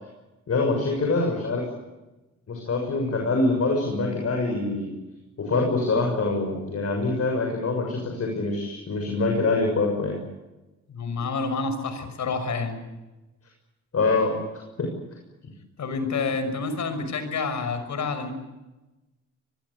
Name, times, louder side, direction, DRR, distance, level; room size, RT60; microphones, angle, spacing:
voice 1, 0.5-1.6 2.5-4.9 5.4-10.2 13.9-14.4 14.8-14.9, left 3 dB, 55° left, 2 dB, 6.8 m, -24 dB
voice 2, 10.9-12.8 15.8-18.3, left 4 dB, 75° left, 9 dB, 6.0 m, -28 dB
26.0 x 22.0 x 8.5 m, 1.1 s
cardioid pair, 90°, 29 cm